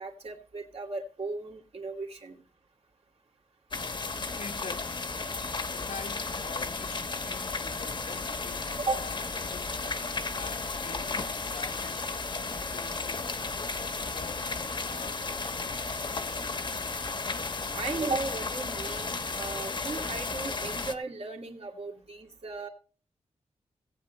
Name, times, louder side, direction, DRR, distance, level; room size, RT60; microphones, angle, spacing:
voice 1, 0.0-2.4 8.9-9.0 17.7-22.7, right 3 dB, 60° right, 2.3 m, -36 dB
sound 1, 3.7-20.9, left 3 dB, 40° left, 1.0 m, -34 dB
voice 2, 4.4-5.0 5.7-9.8 10.3-13.4 13.8-16.5, left 5 dB, 80° left, 1.1 m, -46 dB
17.5 x 8.4 x 3.2 m
wide cardioid pair, 120°, 12 cm